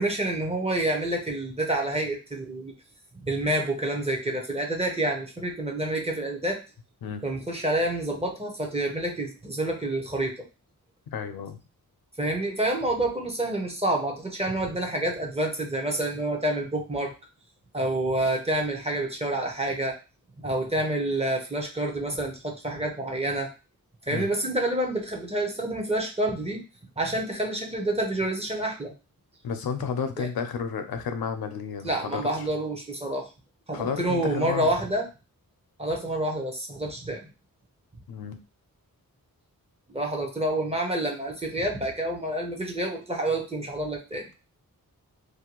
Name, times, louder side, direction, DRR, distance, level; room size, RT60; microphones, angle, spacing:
voice 1, 0.0-2.7 3.2-6.6 7.2-10.4 12.2-17.1 17.7-20.0 20.4-23.5 24.1-26.6 27.0-28.9 30.2-30.3 31.8-33.3 33.7-35.1 35.8-37.2 39.9-44.3, right 1 dB, 20° right, 1 dB, 0.6 m, -28 dB
voice 2, 11.1-11.6 24.1-24.3 29.4-32.3 33.7-34.7 38.1-38.4, left 6 dB, 90° left, 8 dB, 0.5 m, -32 dB
2.6 x 2.2 x 2.9 m, 0.30 s
wide cardioid pair, 135°, 35 cm